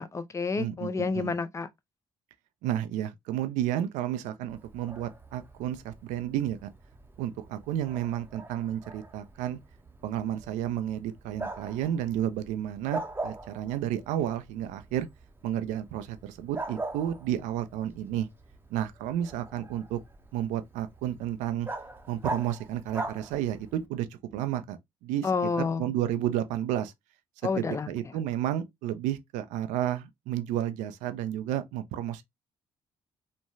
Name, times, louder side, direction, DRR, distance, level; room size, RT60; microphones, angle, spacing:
voice 1, 0.0-1.7 25.2-25.9 27.4-27.9, left 4 dB, 25° left, 0.5 m, -29 dB
voice 2, 0.6-1.3 2.6-6.7 7.2-9.6 10.0-15.1 15.4-18.3 18.7-20.0 20.3-21.7 22.1-25.3 25.8-26.9 27.6-32.2, right 11 dB, 80° right, 0.4 m, -31 dB
Bark, 4.5-23.9, right 2 dB, 15° right, 0.7 m, -42 dB
3.0 x 2.2 x 2.5 m
supercardioid pair, 60°, 13 cm